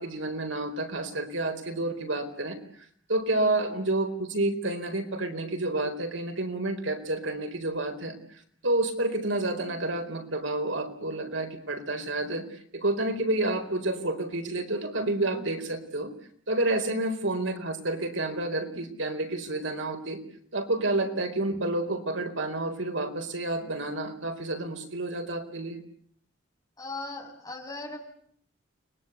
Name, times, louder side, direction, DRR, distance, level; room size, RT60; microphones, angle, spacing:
voice 1, 0.0-2.6 3.1-8.1 8.6-16.1 16.5-20.2 20.5-25.8, right 2 dB, 80° right, 5 dB, 4.6 m, -29 dB
voice 2, 26.8-28.0, left 2 dB, 20° left, 1 dB, 6.7 m, -38 dB
30.0 x 21.5 x 8.3 m, 0.63 s
head